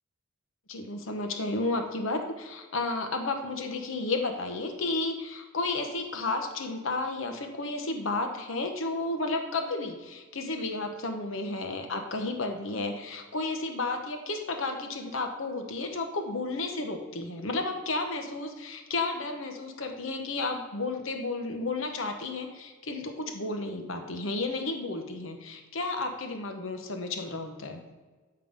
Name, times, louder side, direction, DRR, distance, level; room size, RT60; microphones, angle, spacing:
voice 1, 0.7-27.8, left 3 dB, 65° left, 5 dB, 0.9 m, -32 dB
8.4 x 3.8 x 5.1 m, 1.3 s
head